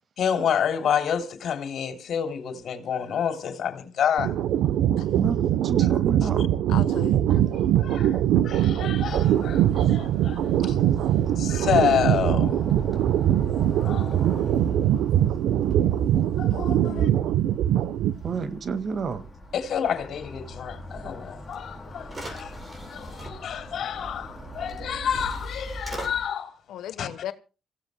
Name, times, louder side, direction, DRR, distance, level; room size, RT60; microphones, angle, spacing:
voice 1, 0.2-4.3 5.8-5.9 6.2-6.3 7.3-10.8 11.4-12.6 13.8-14.2 16.4-17.1 19.5-22.6 22.9-26.5 27.0-27.1, left 8 dB, 65° left, 3.2 m, -29 dB
sound 1, 4.2-18.4, right 11 dB, 85° right, 0.8 m, -22 dB
voice 2, 5.1-6.5 18.2-19.2, right 5 dB, 50° right, 1.8 m, -30 dB
voice 3, 6.7-7.2 16.5-17.1 26.7-27.3, left 11 dB, 80° left, 1.1 m, -36 dB
sound 2, 9.1-26.3, equal, 5° left, 4.2 m, -41 dB
sound 3, 21.5-21.6 22.0-23.3 24.7-24.8 25.1-26.1, right 2 dB, 25° right, 7.4 m, -39 dB
27.0 x 16.0 x 2.2 m
cardioid pair, 90°, 0 cm